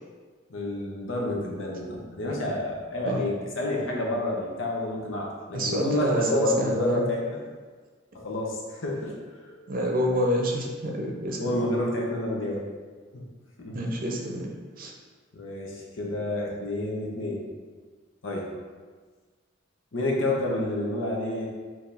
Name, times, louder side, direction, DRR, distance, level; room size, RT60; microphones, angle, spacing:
voice 1, 0.5-7.4 8.1-9.8 11.4-12.6 13.1-13.3 13.6-13.8 15.3-17.5 18.2-18.5 19.9-21.5, left 2 dB, 85° left, -2 dB, 0.8 m, -29 dB
voice 2, 5.5-7.0 9.7-11.6 13.7-14.5 14.8-14.9, equal, 50° right, 1 dB, 0.6 m, -27 dB
4.6 x 2.8 x 3.3 m, 1.5 s
head